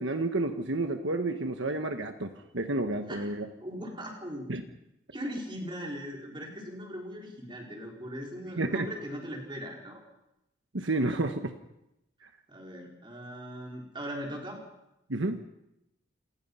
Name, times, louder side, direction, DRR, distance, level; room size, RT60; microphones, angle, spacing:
voice 1, 0.0-3.5 4.5-4.6 8.6-8.9 10.7-11.5 15.1-15.4, right 2 dB, 70° right, 6 dB, 1.3 m, -30 dB
voice 2, 3.6-4.5 5.1-10.0 12.5-14.6, equal, 25° right, -1 dB, 4.8 m, -39 dB
28.0 x 18.5 x 5.7 m, 0.88 s
head